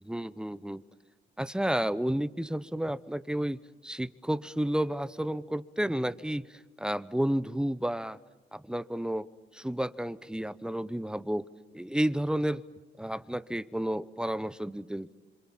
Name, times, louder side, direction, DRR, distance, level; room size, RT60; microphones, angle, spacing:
voice 1, 0.0-0.8 1.4-8.2 8.5-9.3 9.5-11.5 11.7-12.6 13.0-15.1, right 1 dB, 5° right, 15 dB, 0.9 m, -31 dB
27.0 x 26.5 x 7.4 m, 1.2 s
cardioid pair, 90°, 20 cm